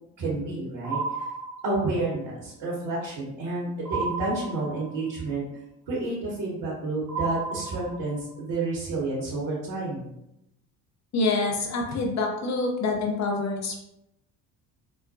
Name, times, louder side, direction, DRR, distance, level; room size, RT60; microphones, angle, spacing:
voice 1, 0.2-1.2 1.6-5.4 5.9-10.1, right 2 dB, 55° right, -7 dB, 1.3 m, -30 dB
sound 1, 0.8-2.1 3.9-5.1 7.1-8.3, right 4 dB, 85° right, 0.8 m, -33 dB
voice 2, 11.1-13.7, left 3 dB, 35° left, 0 dB, 0.8 m, -26 dB
4.2 x 2.2 x 2.7 m, 0.83 s
hypercardioid pair, 60°, 49 cm